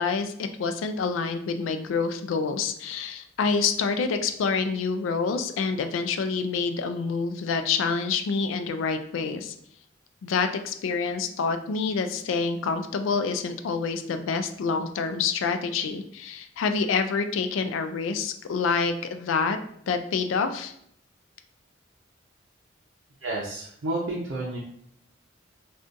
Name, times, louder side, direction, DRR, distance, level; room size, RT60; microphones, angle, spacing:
voice 1, 0.0-9.5 10.2-19.6 19.9-20.7, left 5 dB, 90° left, 9 dB, 0.3 m, -27 dB
voice 2, 23.2-24.6, right 2 dB, 75° right, -3 dB, 0.5 m, -30 dB
3.7 x 2.3 x 2.5 m, 0.70 s
head